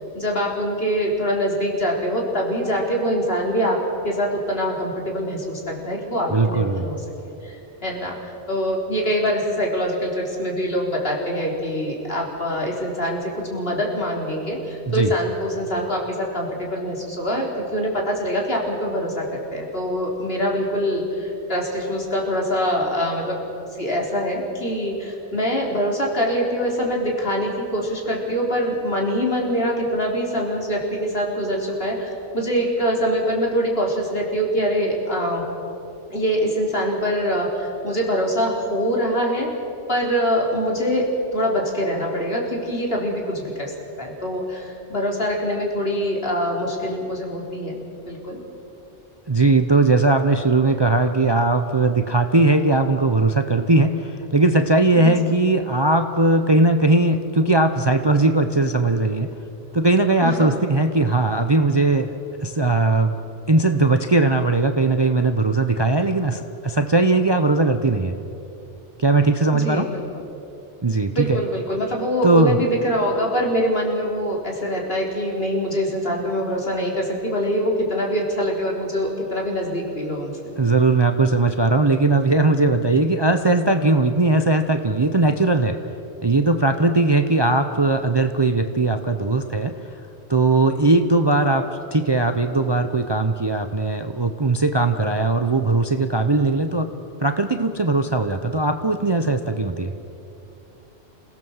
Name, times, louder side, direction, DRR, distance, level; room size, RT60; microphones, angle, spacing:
voice 1, 0.1-23.4 23.7-35.4 36.1-39.5 39.9-47.8 48.1-48.4 54.9-55.1 60.2-60.6 69.5-70.0 71.1-80.4, equal, 55° left, -1 dB, 3.9 m, -24 dB
voice 2, 6.3-6.9 14.9-15.1 49.3-59.3 59.7-63.1 63.5-68.1 69.0-69.9 70.8-71.4 72.2-72.6 80.6-85.8 86.2-89.7 90.3-96.9 97.2-99.9, right 2 dB, 25° right, 7 dB, 0.7 m, -19 dB
27.0 x 17.5 x 7.2 m, 2.8 s
omnidirectional pair, 1.2 m